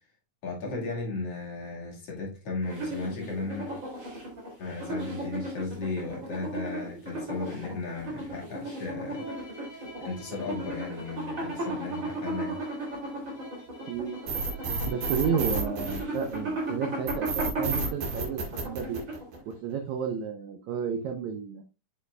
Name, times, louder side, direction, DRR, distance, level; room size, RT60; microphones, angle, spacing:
voice 1, 0.4-3.8 4.6-9.2 10.0-12.6, left 3 dB, 45° left, 2.9 m, -35 dB
sound 1, 2.6-19.5, right 1 dB, 25° right, 2.9 m, -35 dB
Bowed string instrument, 9.1-15.8, equal, 10° left, 2.8 m, -47 dB
voice 2, 13.9-14.2 14.9-19.0 19.5-21.6, right 7 dB, 80° right, 1.6 m, -32 dB
sound 2, 14.3-16.5 17.1-19.5, right 3 dB, 55° right, 2.8 m, -31 dB
7.5 x 6.6 x 2.3 m
omnidirectional pair, 4.2 m